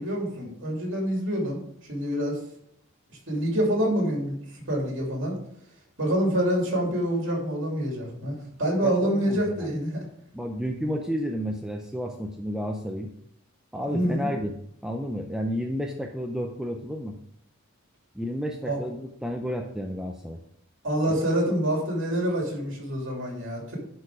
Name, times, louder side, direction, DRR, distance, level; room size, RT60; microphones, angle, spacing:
voice 1, 0.0-1.6 1.9-2.4 3.1-4.3 4.7-5.4 6.0-10.0 13.9-14.3 18.6-18.8 20.8-23.8, right 1 dB, 55° right, -1 dB, 2.9 m, -26 dB
voice 2, 8.8-9.6 10.3-13.1 13.7-14.5 14.8-17.2 18.1-20.4, equal, 5° right, 1 dB, 0.6 m, -31 dB
11.0 x 4.6 x 4.9 m, 0.71 s
head